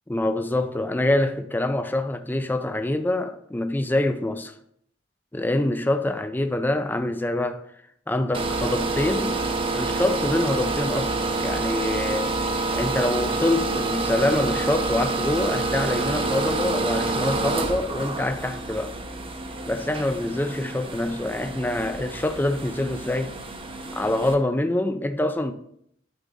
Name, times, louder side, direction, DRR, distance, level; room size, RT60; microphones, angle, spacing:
voice 1, 0.1-4.5 5.3-7.6 8.1-9.4 9.7-12.3 12.7-18.9 19.7-23.4 23.9-25.5, left 1 dB, 10° left, 0.4 m, -25 dB
sound 1, 8.3-24.3, right 3 dB, 25° right, 0.6 m, -28 dB
11.5 x 3.9 x 3.8 m
head